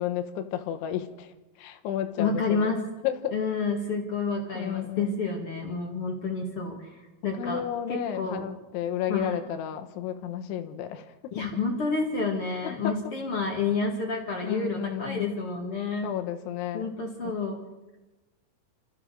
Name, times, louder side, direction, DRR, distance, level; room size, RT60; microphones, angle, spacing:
voice 1, 0.0-2.7 3.0-3.3 4.5-5.2 6.7-6.8 7.3-11.3 12.6-13.0 14.4-15.3 16.0-16.9 17.2-17.3, left 10 dB, 80° left, 8 dB, 3.4 m, -32 dB
voice 2, 2.2-2.8 3.3-7.0 7.2-7.6 7.9-8.4 9.1-9.4 11.3-16.1 16.7-17.6, left 4 dB, 50° left, 2 dB, 1.7 m, -29 dB
28.0 x 14.5 x 6.7 m, 1.1 s
omnidirectional pair, 5.5 m